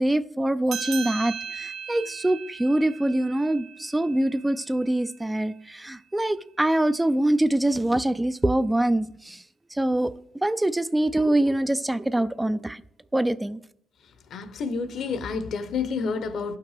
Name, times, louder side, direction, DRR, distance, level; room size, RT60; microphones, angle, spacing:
voice 1, 0.0-9.4 9.7-10.1 10.4-12.8 13.1-13.6, right 1 dB, 10° right, 0.4 m, -24 dB
sound 1, 0.7-5.6, right 7 dB, 85° right, 1.5 m, -38 dB
voice 2, 14.3-16.6, left 5 dB, 65° left, 0.9 m, -29 dB
11.5 x 5.9 x 4.9 m
cardioid pair, 90°, 0 cm